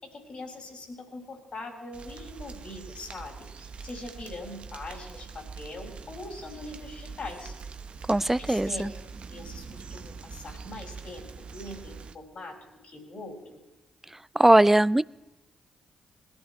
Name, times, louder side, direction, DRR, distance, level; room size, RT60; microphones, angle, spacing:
voice 1, 0.0-7.5 8.4-8.8 9.3-11.3 11.5-12.6 12.8-13.6, left 2 dB, 55° left, 2 dB, 4.3 m, -42 dB
sound 1, 1.9-12.2, right 5 dB, 55° right, 0.9 m, -43 dB
voice 2, 8.1-8.9 14.4-15.0, right 1 dB, 10° right, 21 dB, 0.4 m, -20 dB
21.0 x 14.0 x 3.1 m, 1.0 s
hypercardioid pair, 40°, 2 cm